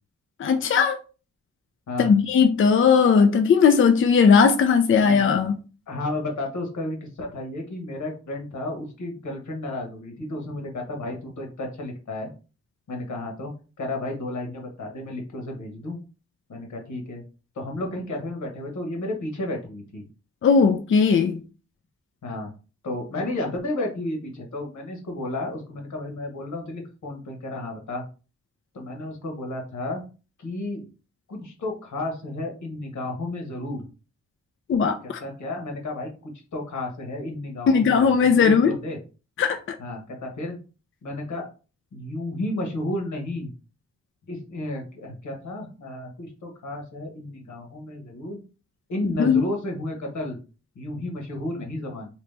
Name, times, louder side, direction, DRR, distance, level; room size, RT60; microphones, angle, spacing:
voice 1, 0.4-1.0 2.0-5.6 20.4-21.4 34.7-35.0 37.7-38.7 39.4-39.8 49.2-49.4, left 6 dB, 45° left, 0.4 m, -18 dB
voice 2, 5.9-12.3 12.9-13.5 13.8-16.0 16.5-17.2 17.5-20.0 22.2-22.5 22.8-28.0 28.7-30.0 30.4-30.9 31.3-33.9 35.2-39.0 39.8-40.6 41.0-41.5 41.9-43.5 44.3-48.4 48.9-50.4 50.7-52.1, left 1 dB, 85° left, 1.3 m, -32 dB
2.9 x 2.9 x 3.3 m
cardioid pair, 85°, 29 cm